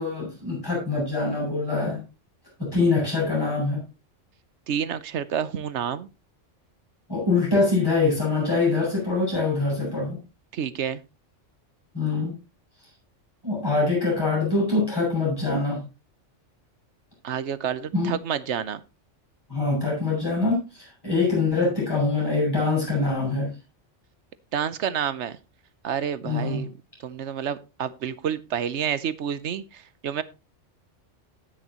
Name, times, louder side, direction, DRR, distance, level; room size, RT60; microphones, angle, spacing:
voice 1, 0.0-2.0 2.6-3.8 7.1-10.2 11.9-12.3 13.4-15.8 17.9-18.1 19.5-23.5 26.2-26.6, left 3 dB, 20° left, -4 dB, 6.7 m, -24 dB
voice 2, 4.7-6.1 10.5-11.0 17.2-18.8 24.5-25.4 25.8-26.7 27.0-30.2, right 8 dB, 70° right, 15 dB, 1.1 m, -29 dB
18.5 x 6.4 x 3.0 m, 0.27 s
omnidirectional pair, 1.3 m